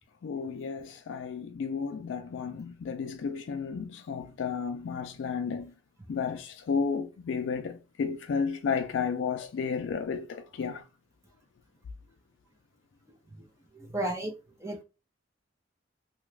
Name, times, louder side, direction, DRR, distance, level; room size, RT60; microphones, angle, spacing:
voice 1, 0.2-5.7 6.1-10.8, left 5 dB, 70° left, 0.3 m, -32 dB
voice 2, 13.7-14.3 14.6-14.8, right 1 dB, 15° right, 0.6 m, -33 dB
2.8 x 2.3 x 3.2 m
head